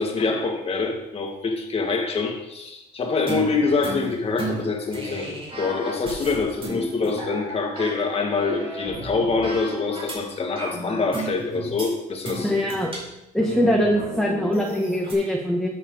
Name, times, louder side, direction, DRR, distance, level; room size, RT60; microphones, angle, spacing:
voice 1, 0.0-12.5, left 4 dB, 35° left, 2 dB, 2.2 m, -25 dB
sound 1, 3.3-10.2 10.6-11.9 12.2-15.1, right 2 dB, 35° right, 4.4 m, -34 dB
voice 2, 12.4-12.9 13.3-15.7, left 1 dB, 5° left, -1 dB, 1.4 m, -22 dB
12.5 x 7.4 x 4.0 m, 0.88 s
cardioid pair, 110°, 17 cm